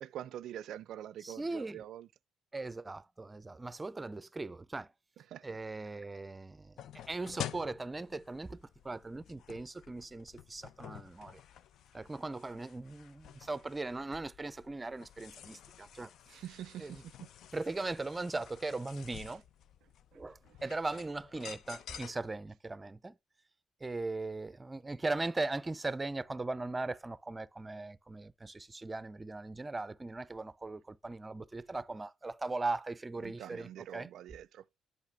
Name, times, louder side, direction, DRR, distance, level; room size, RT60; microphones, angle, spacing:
voice 1, 0.0-2.1 5.2-5.6 16.3-17.3 19.3-19.4 19.8-20.8 33.2-34.7, right 11 dB, 75° right, 0.3 m, -46 dB
voice 2, 1.2-1.8 2.5-4.9 5.4-6.7 7.1-11.4 11.9-16.1 16.8-16.9 17.5-19.4 20.1-23.2 23.8-33.7 33.9-34.1, right 3 dB, 20° right, 0.5 m, -39 dB
sound 1, 6.8-22.4, left 10 dB, 75° left, 0.4 m, -50 dB
8.2 x 5.4 x 3.3 m
cardioid pair, 90°, 0 cm